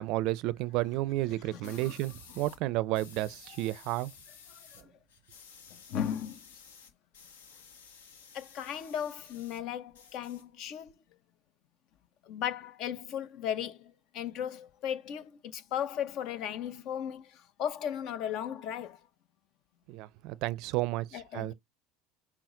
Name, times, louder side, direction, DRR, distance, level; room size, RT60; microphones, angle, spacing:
voice 1, 0.0-4.1 19.9-21.5, right 17 dB, 60° right, 0.4 m, -32 dB
voice 2, 1.5-1.9 4.7-4.8 5.9-6.4 8.3-10.9 12.2-19.0 21.1-21.5, left 9 dB, 60° left, 0.7 m, -36 dB
sound 1, 1.6-2.6 2.9-4.8 5.1-9.6 9.9-10.9, left 6 dB, 80° left, 1.0 m, -54 dB
5.8 x 2.1 x 3.6 m
hypercardioid pair, 80°, 0 cm